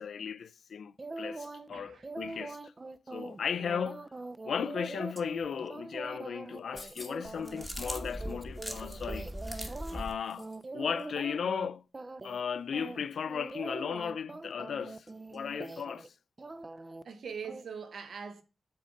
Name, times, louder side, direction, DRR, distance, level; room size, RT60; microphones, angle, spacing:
voice 1, 0.0-2.7 3.1-4.1 4.4-9.6 9.9-11.8 12.2-16.1, left 7 dB, 65° left, 0.4 m, -36 dB
sound 1, 1.0-1.7 2.0-10.0 10.4-11.7 11.9-12.4 12.7-16.1 16.4-17.0 17.4-17.6, right 2 dB, 20° right, 0.4 m, -43 dB
voice 2, 1.7-2.4 17.0-18.4, right 6 dB, 60° right, 0.9 m, -43 dB
sound 2, 6.5-7.4 8.9-10.7 10.9-11.1, left 3 dB, 30° left, 0.9 m, -52 dB
sound 3, 7.2-10.1, equal, 5° right, 1.0 m, -40 dB
7.6 x 3.9 x 5.0 m
wide cardioid pair, 155°, 0 cm